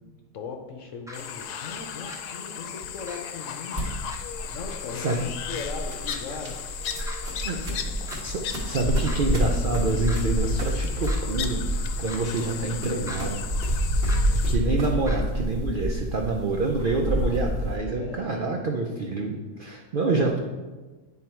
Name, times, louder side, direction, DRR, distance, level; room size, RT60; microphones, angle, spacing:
voice 1, 0.3-3.9 4.5-6.7 7.7-7.8 16.3-17.6 18.0-18.6, left 5 dB, 60° left, 4 dB, 1.0 m, -39 dB
sound 1, 1.1-14.6, left 8 dB, 85° left, 1.2 m, -36 dB
sound 2, 1.1-1.2 2.1-2.2 3.1-3.2 4.1-4.2 5.1-5.2 6.1-6.2 7.1-7.2 8.1-8.2 9.1-9.2 10.1-10.2 11.1-11.2 12.1-12.2 13.1-13.2 14.1-14.2 15.1-15.2, equal, 5° right, 0.3 m, -39 dB
sound 3, 3.7-17.8, equal, 40° right, 1.4 m, -28 dB
voice 2, 8.2-13.5 14.3-20.4, right 3 dB, 75° right, 2 dB, 0.4 m, -27 dB
9.5 x 3.7 x 4.4 m, 1.3 s
omnidirectional pair, 1.7 m